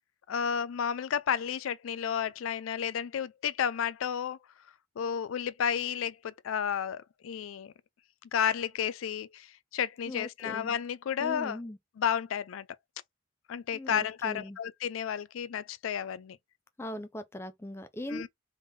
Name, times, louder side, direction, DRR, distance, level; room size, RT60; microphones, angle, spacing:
voice 1, 0.3-4.4 5.0-7.7 8.3-11.6 12.0-12.7 13.5-16.4 18.1-18.3, left 8 dB, 85° left, 0.4 m, -32 dB
voice 2, 10.1-10.7 11.2-11.8 13.7-14.6 16.8-18.3, left 1 dB, 10° left, 0.4 m, -40 dB
3.6 x 3.4 x 2.6 m
head